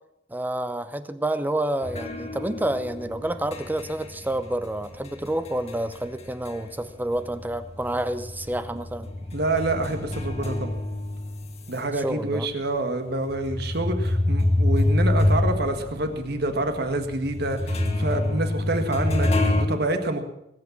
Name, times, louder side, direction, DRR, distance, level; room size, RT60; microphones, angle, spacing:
voice 1, 0.3-9.1 11.9-12.5, right 1 dB, 10° right, 11 dB, 0.7 m, -29 dB
sound 1, 1.8-6.8 7.1-11.8 12.4-12.5 13.2-19.6, left 1 dB, 35° left, 1.9 m, -26 dB
voice 2, 9.3-10.7 11.7-20.2, right 2 dB, 60° right, 6 dB, 1.8 m, -27 dB
19.5 x 8.5 x 7.4 m, 0.83 s
head